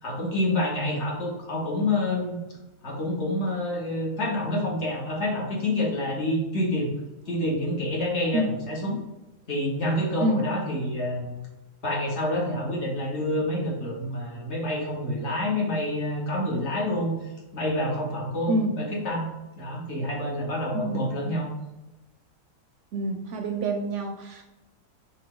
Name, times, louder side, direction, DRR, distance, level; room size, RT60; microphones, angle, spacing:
voice 1, 0.0-2.4 2.8-6.9 7.3-9.0 9.5-11.4 11.8-17.1 17.5-19.3 19.6-21.5, left 1 dB, 55° left, -3 dB, 1.4 m, -27 dB
voice 2, 20.7-21.3 22.9-24.4, right 1 dB, 70° right, 4 dB, 0.8 m, -27 dB
6.2 x 2.2 x 3.7 m, 1.0 s
omnidirectional pair, 1.5 m